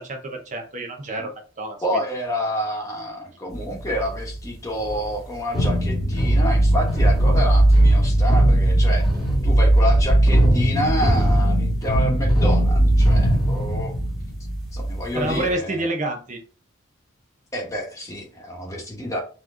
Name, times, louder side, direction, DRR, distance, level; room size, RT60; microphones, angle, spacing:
voice 1, 0.0-1.8 15.1-16.4, right 1 dB, 35° right, 3 dB, 0.8 m, -28 dB
voice 2, 1.8-9.1 9.4-13.9 14.7-15.9 17.5-19.2, equal, 15° left, -1 dB, 1.2 m, -28 dB
sound 1, 3.5-4.4 4.8-5.1 5.5-15.5, right 1 dB, ahead, 1.4 m, -18 dB
4.3 x 3.0 x 3.7 m, 0.38 s
head